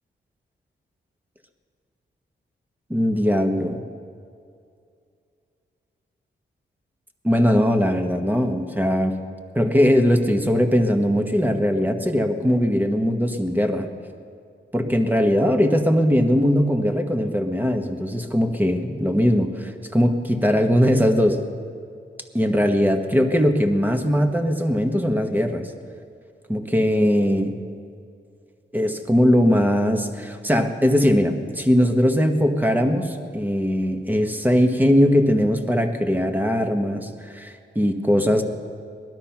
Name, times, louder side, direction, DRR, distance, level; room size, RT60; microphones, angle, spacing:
voice 1, 2.9-3.8 7.2-9.1 9.5-13.9 14.7-21.4 22.3-25.7 26.5-27.5 28.7-38.4, equal, 10° right, 4 dB, 1.4 m, -20 dB
19.5 x 12.5 x 6.0 m, 2.4 s
cardioid pair, 85°, 19 cm